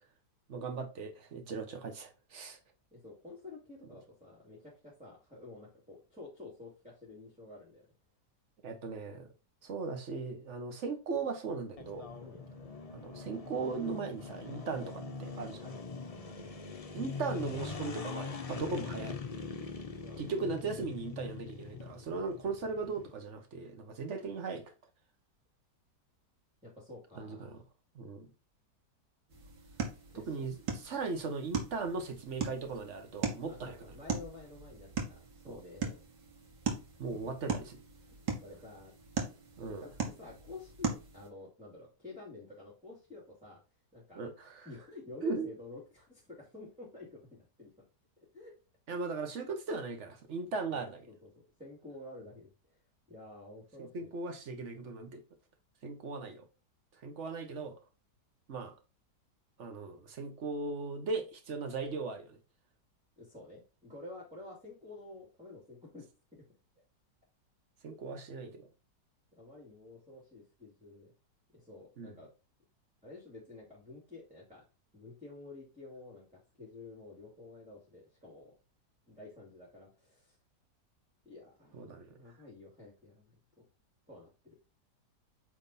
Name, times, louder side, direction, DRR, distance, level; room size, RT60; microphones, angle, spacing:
voice 1, 0.5-2.6 8.6-9.3 9.6-12.1 12.9-15.7 16.9-19.2 20.2-24.7 27.2-27.6 27.9-28.3 30.1-33.8 35.5-35.6 37.0-37.8 39.6-39.9 44.2-44.7 45.2-45.5 48.9-51.0 53.8-55.2 55.8-56.5 57.0-57.7 58.5-58.7 59.6-62.4 67.8-68.7 72.0-72.1 81.7-82.2, right 4 dB, 45° right, 1.4 m, -38 dB
voice 2, 2.9-7.9 12.2-12.4 15.6-16.0 20.0-20.7 26.6-27.5 30.1-30.3 33.5-36.0 37.1-37.3 38.3-38.9 39.7-43.6 43.9-44.2 44.6-47.7 48.2-48.5 50.7-51.3 51.6-52.8 53.1-54.1 63.2-66.0 66.3-66.4 67.9-68.0 69.4-71.1 71.5-72.3 73.0-74.6 74.9-78.5 79.1-80.4 81.2-83.6 84.1-84.6, left 2 dB, 5° right, 2.3 m, -50 dB
sound 1, 11.8-23.1, left 4 dB, 70° left, 0.3 m, -43 dB
sound 2, 29.3-41.3, right 5 dB, 80° right, 2.1 m, -39 dB
8.6 x 3.5 x 4.2 m
omnidirectional pair, 1.9 m